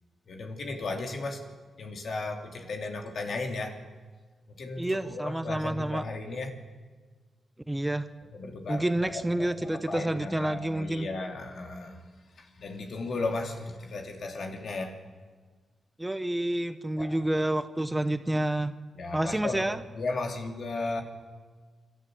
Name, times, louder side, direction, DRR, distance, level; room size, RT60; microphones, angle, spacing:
voice 1, 0.3-1.4 1.8-3.8 4.5-6.6 8.3-12.0 12.4-15.0 17.0-17.1 19.0-21.0, left 3 dB, 65° left, 3 dB, 2.9 m, -35 dB
voice 2, 4.8-6.0 7.7-8.0 8.7-11.1 16.0-18.7 19.1-19.8, right 1 dB, 15° right, 10 dB, 1.1 m, -29 dB
26.5 x 13.0 x 8.0 m, 1.5 s
cardioid pair, 65°, 0 cm